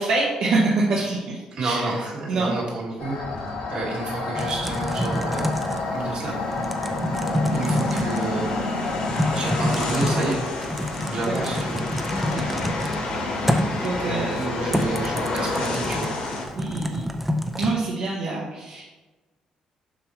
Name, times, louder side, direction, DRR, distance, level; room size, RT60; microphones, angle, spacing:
voice 1, 0.0-1.9 2.3-2.5 11.3-11.5 12.3-12.6 13.8-14.4 14.8-14.9 16.6-17.0 17.6-18.8, right 3 dB, 70° right, -4 dB, 1.1 m, -25 dB
voice 2, 1.5-3.3 3.7-5.5 5.9-6.4 7.5-8.5 9.3-10.4 11.1-11.8 14.0-16.1, right 2 dB, 50° right, -3 dB, 1.8 m, -29 dB
sound 1, 3.0-16.4, left 2 dB, 90° left, 1.5 m, -29 dB
Typing, 4.3-17.7, left 1 dB, 5° right, 0.5 m, -28 dB
7.1 x 5.7 x 3.0 m, 1.2 s
cardioid pair, 160°, 2 cm